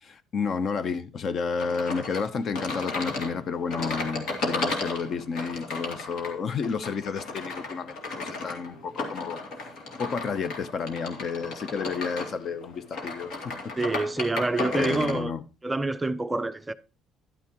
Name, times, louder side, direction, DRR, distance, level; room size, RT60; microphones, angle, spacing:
voice 1, 0.0-9.4 10.0-13.7 14.7-15.4, left 5 dB, 45° left, 0.6 m, -31 dB
sound 1, 1.6-15.2, left 3 dB, 65° left, 2.5 m, -34 dB
voice 2, 13.8-15.3 15.6-16.7, right 2 dB, 15° right, 0.4 m, -27 dB
11.0 x 9.4 x 2.9 m
cardioid pair, 125°, 0 cm